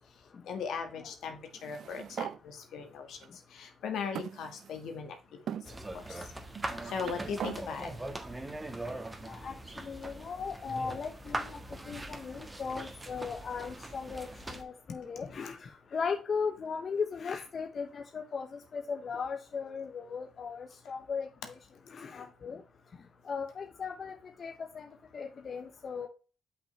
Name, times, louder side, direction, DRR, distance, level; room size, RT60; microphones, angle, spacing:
voice 1, 0.4-6.3 6.8-7.9 11.9-12.0, left 6 dB, 75° left, 6 dB, 1.7 m, -39 dB
sound 1, 1.5-2.4 3.2-3.3 4.1-5.0 5.5-5.7 6.5-7.6, right 9 dB, 65° right, 0.5 m, -40 dB
sound 2, 5.6-14.6, right 1 dB, 15° right, 1.4 m, -41 dB
voice 2, 9.8-11.6 11.9-15.6 15.9-18.5 18.7-21.3 21.9-22.6 23.3-24.1 24.4-24.9 25.1-26.1, left 5 dB, 45° left, 4 dB, 1.0 m, -37 dB
7.8 x 5.8 x 3.2 m, 0.34 s
cardioid pair, 90°, 0 cm